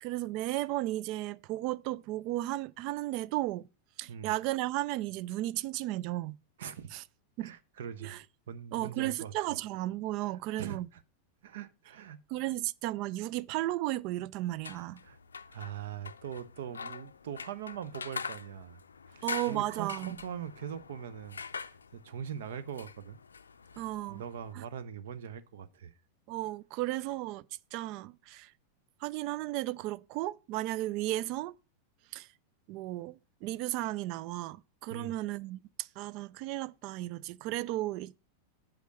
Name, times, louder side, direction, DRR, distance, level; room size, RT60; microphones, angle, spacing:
voice 1, 0.0-3.7 4.0-6.4 6.9-7.0 7.4-7.5 8.0-8.2 8.7-10.9 12.3-15.0 19.2-20.2 23.8-24.2 24.5-24.6 26.3-27.5 27.7-28.5 29.0-31.5 32.1-32.3 32.7-38.2, right 16 dB, 45° right, 0.3 m, -34 dB
voice 2, 6.6-6.9 7.4-8.2 8.5-9.3 10.6-10.8 11.4-12.2 15.0-15.2 15.5-18.8 19.1-21.4 21.7-23.2 23.7-25.9 34.9-35.2, right 8 dB, 60° right, 0.7 m, -42 dB
sound 1, 14.5-24.5, left 5 dB, 75° left, 0.5 m, -44 dB
8.2 x 5.3 x 6.0 m
figure-of-eight pair, 90°, 0 cm